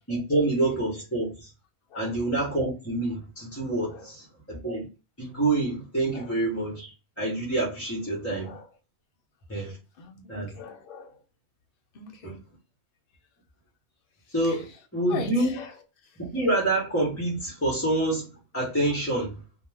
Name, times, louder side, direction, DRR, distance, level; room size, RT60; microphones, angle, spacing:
voice 1, 0.1-1.5 1.9-4.9 5.2-6.9 7.2-8.5 9.5-9.7 10.3-10.5 12.2-12.3 14.3-15.5 16.2-18.3 18.5-19.3, right 2 dB, 15° left, 0.7 m, -27 dB
voice 2, 10.0-11.2 11.9-12.4 14.4-14.8 15.1-16.2, left 4 dB, 60° left, 0.8 m, -41 dB
2.3 x 2.2 x 3.2 m
omnidirectional pair, 1.2 m